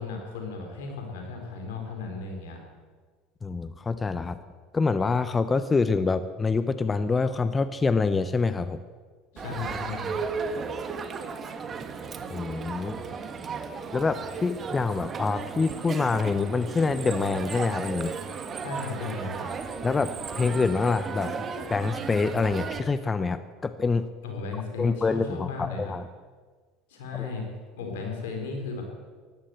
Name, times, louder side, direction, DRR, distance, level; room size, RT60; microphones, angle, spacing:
voice 1, 0.0-2.6 9.3-10.2 18.6-19.5 24.2-25.9 26.9-27.5 27.8-28.8, left 4 dB, 80° left, 2 dB, 4.2 m, -35 dB
voice 2, 3.4-4.4 4.7-8.8 12.3-12.9 13.9-18.1 19.8-21.3 21.7-24.1 24.8-26.1 27.2-27.3, left 4 dB, 25° left, 13 dB, 0.8 m, -26 dB
Crowd, 9.4-22.8, right 5 dB, 35° right, 1.7 m, -35 dB
15.5 x 11.5 x 7.8 m, 1.5 s
hypercardioid pair, 85°, 0 cm